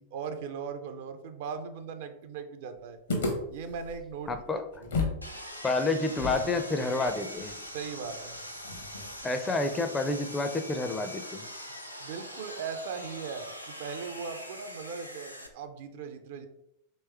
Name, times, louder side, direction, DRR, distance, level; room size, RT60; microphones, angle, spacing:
voice 1, 0.0-3.0 3.5-4.4 4.8-4.9 7.7-8.4 12.0-16.5, right 6 dB, 55° right, 8 dB, 0.4 m, -39 dB
sound 1, 3.1-5.3 5.5-5.6 6.2-9.3, left 3 dB, 65° left, 0.8 m, -35 dB
voice 2, 4.3-4.6 5.6-7.6 9.2-11.4, left 3 dB, 15° left, 7 dB, 0.4 m, -29 dB
Sawing, 5.2-15.5, equal, 90° left, 0.4 m, -43 dB
3.1 x 3.0 x 3.3 m, 0.80 s
figure-of-eight pair, 90°, 0 cm